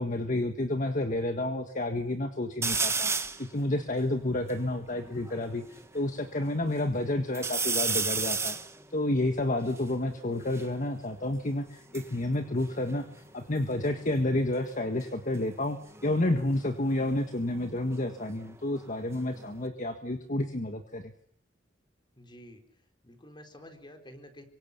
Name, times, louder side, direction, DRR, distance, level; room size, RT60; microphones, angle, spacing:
voice 1, 0.0-3.1 3.4-5.6 5.9-8.6 8.9-13.0 13.3-21.1, left 1 dB, 45° left, 7 dB, 1.6 m, -30 dB
sound 1, 2.6-3.5 4.0-4.1 4.3-5.8 6.4-6.9 7.3-10.7 11.7-13.6 13.8-14.3 15.9-18.5 18.9-19.7, right 4 dB, 15° right, 1.4 m, -34 dB
voice 2, 22.2-22.6 23.0-24.4, equal, 25° left, 6 dB, 4.1 m, -49 dB
26.5 x 24.5 x 6.9 m, 0.67 s
head